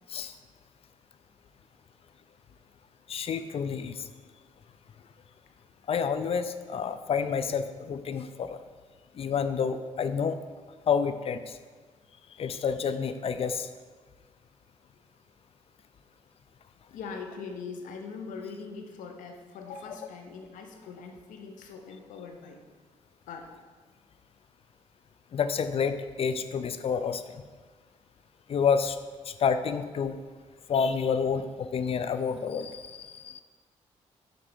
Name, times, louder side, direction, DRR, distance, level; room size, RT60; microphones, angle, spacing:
voice 1, 3.1-4.0 5.9-8.6 9.2-10.4 10.9-11.4 12.4-13.7 25.3-27.2 28.5-29.0 29.3-30.1 30.7-33.4, left 6 dB, 45° left, 11 dB, 0.4 m, -29 dB
voice 2, 16.9-22.6 23.3-23.5, left 5 dB, 85° left, 4 dB, 0.7 m, -41 dB
6.0 x 3.4 x 5.1 m, 1.4 s
supercardioid pair, 70°, 13 cm